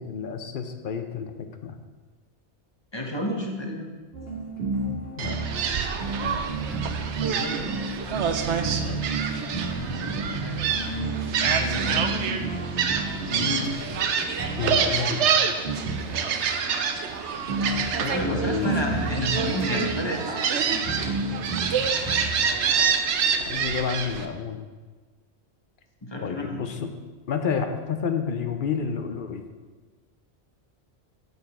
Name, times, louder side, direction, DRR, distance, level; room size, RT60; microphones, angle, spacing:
voice 1, 0.0-1.8 5.2-5.4 8.8-9.0 14.6-15.2 18.3-18.8 23.5-24.7 26.2-26.9 27.3-29.4, left 6 dB, 55° left, 7 dB, 0.7 m, -30 dB
voice 2, 2.9-3.9 7.2-7.7 9.7-12.4 13.3-13.7 18.0-21.0 26.0-26.6, left 1 dB, 25° left, 0 dB, 1.0 m, -31 dB
sound 1, 4.1-23.8, right 3 dB, 60° right, 2.0 m, -32 dB
Gull seagull, 5.2-24.3, right 6 dB, 85° right, 1.0 m, -27 dB
8.4 x 6.5 x 4.2 m, 1.3 s
omnidirectional pair, 1.2 m